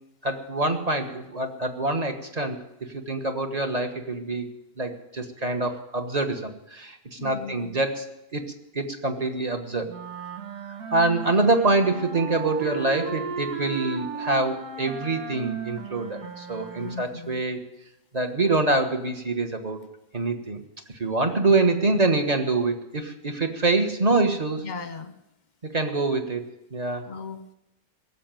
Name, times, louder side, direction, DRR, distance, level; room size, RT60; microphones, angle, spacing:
voice 1, 0.2-2.6 2.9-4.5 4.8-8.5 8.7-9.9 10.9-17.6 18.1-19.9 20.1-20.6 21.0-24.6 25.6-27.1, right 3 dB, 25° right, 4 dB, 1.3 m, -25 dB
voice 2, 7.2-7.8 11.4-11.5 12.6-12.8 16.8-17.4 21.4-21.5 24.6-25.1 27.0-27.5, left 4 dB, 35° left, 10 dB, 0.9 m, -38 dB
sound 1, 9.9-17.2, right 5 dB, 85° right, 2.0 m, -35 dB
17.0 x 7.6 x 9.1 m, 0.88 s
omnidirectional pair, 1.6 m